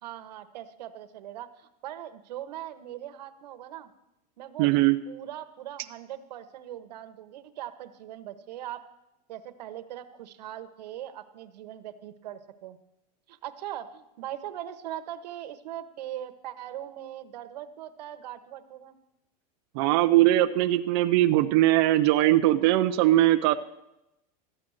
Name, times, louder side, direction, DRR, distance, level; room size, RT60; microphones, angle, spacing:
voice 1, 0.0-3.9 4.4-4.7 5.1-8.8 9.3-12.8 13.3-19.0, right 12 dB, 85° right, 10 dB, 1.0 m, -40 dB
voice 2, 4.6-5.0 19.7-23.6, right 15 dB, 40° right, 8 dB, 0.4 m, -21 dB
13.0 x 8.7 x 6.3 m, 0.90 s
supercardioid pair, 170°, 21 cm